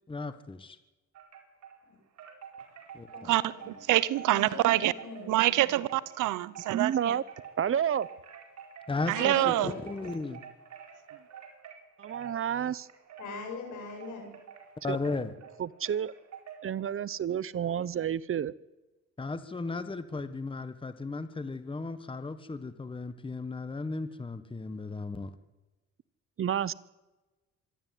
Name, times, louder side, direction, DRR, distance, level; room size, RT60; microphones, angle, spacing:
voice 1, 0.1-0.8 2.9-3.3 8.9-10.4 14.8-15.3 19.2-25.3, left 3 dB, 15° left, 12 dB, 1.3 m, -35 dB
Wind chime, 1.1-1.8 2.2-16.7, right 8 dB, 65° right, 4.8 m, -49 dB
voice 2, 3.1-3.8 4.3-5.6 9.2-10.0 13.2-14.3, left 4 dB, 80° left, 3 dB, 7.9 m, -41 dB
voice 3, 3.9-4.9 5.3-7.1 9.1-9.7, right 15 dB, 90° right, 18 dB, 0.9 m, -26 dB
voice 4, 6.7-7.2 7.6-8.1 12.0-12.9 14.9-15.0 15.6-16.1 16.6-18.5 26.4-26.7, right 9 dB, 45° right, 20 dB, 0.7 m, -30 dB
25.5 x 11.5 x 9.3 m, 1.1 s
cardioid pair, 90°, 30 cm